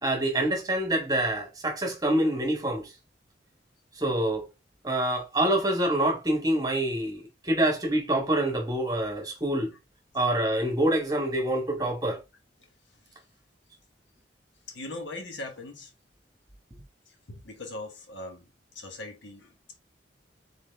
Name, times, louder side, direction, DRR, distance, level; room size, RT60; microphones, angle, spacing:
voice 1, 0.0-2.9 4.0-4.4 4.8-9.7 10.1-12.2, right 1 dB, 20° right, 1.2 m, -26 dB
voice 2, 14.7-15.9 17.1-19.8, left 2 dB, 80° left, 1.2 m, -41 dB
4.1 x 3.8 x 3.4 m
head